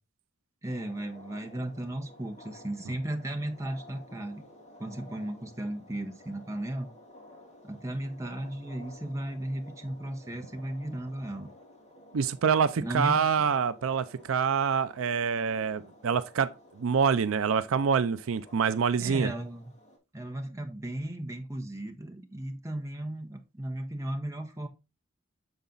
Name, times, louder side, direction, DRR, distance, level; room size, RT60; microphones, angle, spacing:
voice 1, 0.6-4.4 4.8-6.9 7.6-11.5 12.8-13.5 19.0-19.7 20.1-24.7, right 1 dB, 15° right, 0.8 m, -35 dB
sound 1, 0.7-20.0, left 1 dB, 35° left, 2.2 m, -53 dB
voice 2, 12.1-16.5 16.8-19.3, right 6 dB, 75° right, 0.4 m, -26 dB
7.0 x 4.0 x 3.8 m
head